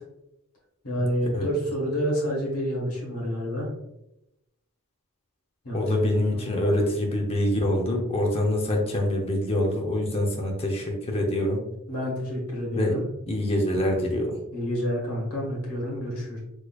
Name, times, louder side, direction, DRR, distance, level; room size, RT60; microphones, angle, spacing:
voice 1, 0.8-3.7 5.6-6.4 11.9-13.0 14.5-16.4, equal, 80° left, -3 dB, 1.4 m, -29 dB
voice 2, 5.7-11.6 12.7-13.0 13.3-14.4, left 1 dB, 25° left, 1 dB, 0.6 m, -25 dB
4.0 x 3.1 x 2.3 m, 0.88 s
head